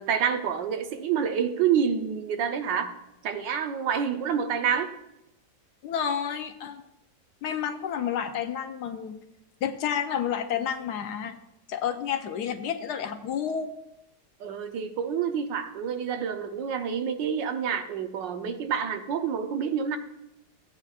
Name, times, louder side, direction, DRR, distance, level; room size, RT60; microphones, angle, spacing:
voice 1, 0.0-2.9 3.2-4.9 14.4-20.0, right 7 dB, 80° right, 7 dB, 1.5 m, -28 dB
voice 2, 5.8-6.8 7.4-9.1 9.6-11.4 11.7-13.7, left 8 dB, 70° left, 7 dB, 1.2 m, -30 dB
15.5 x 9.0 x 2.4 m, 0.87 s
omnidirectional pair, 1.9 m